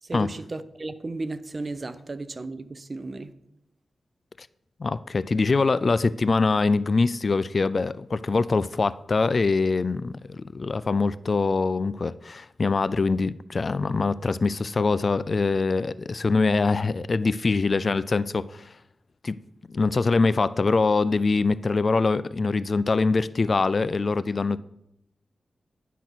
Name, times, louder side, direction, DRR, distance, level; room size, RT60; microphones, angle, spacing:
voice 1, 0.0-3.3, right 2 dB, 40° right, 0.6 m, -34 dB
voice 2, 4.8-18.7 19.2-19.4 19.7-24.6, left 3 dB, 50° left, 0.3 m, -23 dB
10.0 x 4.1 x 6.0 m
cardioid pair, 65°, 0 cm